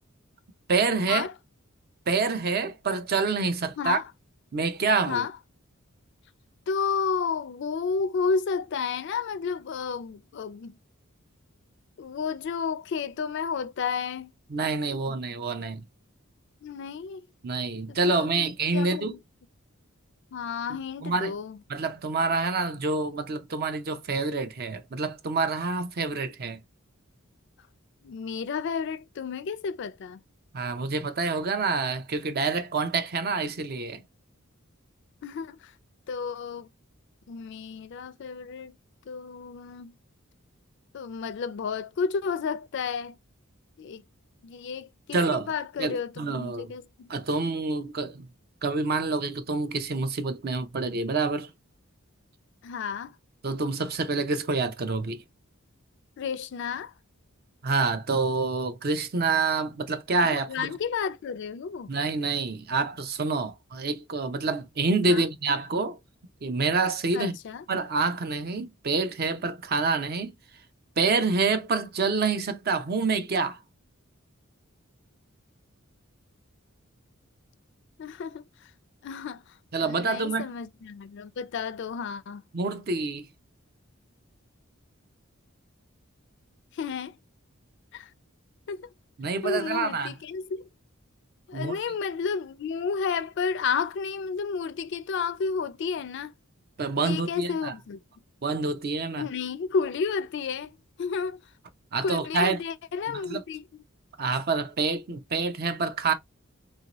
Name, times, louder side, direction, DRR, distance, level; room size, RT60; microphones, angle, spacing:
voice 1, 0.7-1.3 2.1-4.0 4.5-5.3 14.5-15.8 17.4-19.1 21.0-21.3 21.7-26.6 30.5-34.0 45.1-45.5 45.8-46.7 47.1-48.3 48.6-51.5 53.4-55.2 57.6-60.7 61.9-66.0 66.4-67.4 67.7-70.3 71.0-73.6 79.7-80.5 82.5-83.3 89.2-90.1 91.5-91.7 96.8-97.7 98.4-99.3 101.9-102.6 103.1-103.4 104.2-106.1, right 4 dB, 45° right, 0.5 m, -27 dB
voice 2, 6.7-10.8 12.0-14.3 14.9-15.2 16.6-17.2 17.9-19.2 20.3-21.6 28.0-30.2 35.2-35.7 36.1-36.7 37.3-38.8 39.1-39.9 40.9-43.2 43.8-44.0 44.4-47.1 52.6-53.2 56.2-56.9 60.2-61.9 65.0-65.3 67.1-67.6 78.0-78.4 79.0-82.4 86.7-87.2 87.9-88.1 88.7-88.9 89.4-90.7 91.5-96.3 97.0-98.0 99.2-101.4 102.0-103.8, left 5 dB, 55° left, 0.4 m, -32 dB
2.9 x 2.7 x 2.9 m
head